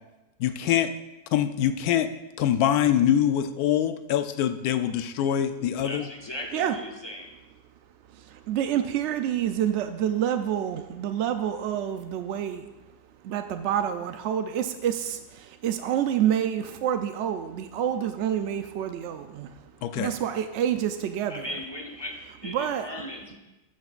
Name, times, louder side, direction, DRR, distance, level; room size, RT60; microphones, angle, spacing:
voice 1, 0.4-0.9 1.3-2.1 2.4-6.1 19.8-20.1, left 10 dB, 75° left, 10 dB, 1.0 m, -24 dB
voice 2, 5.8-7.3 21.3-23.4, left 1 dB, 30° left, 2 dB, 0.5 m, -37 dB
voice 3, 8.1-12.7 13.2-19.6 19.9-21.6 22.4-23.1, right 10 dB, 80° right, 8 dB, 0.6 m, -28 dB
13.0 x 8.9 x 2.4 m, 1.0 s
omnidirectional pair, 1.7 m